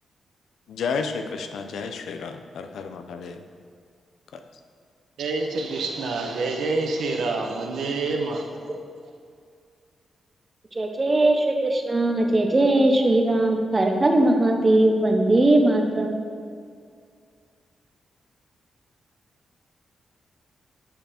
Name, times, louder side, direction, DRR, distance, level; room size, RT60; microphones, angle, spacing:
voice 1, 0.7-3.4 4.3-4.4, left 5 dB, 85° left, 7 dB, 0.6 m, -31 dB
voice 2, 5.2-8.5, right 3 dB, 90° right, 2 dB, 1.0 m, -27 dB
voice 3, 10.7-16.2, right 1 dB, 25° right, 3 dB, 0.9 m, -20 dB
8.8 x 5.5 x 4.3 m, 2.2 s
cardioid pair, 120°, 0 cm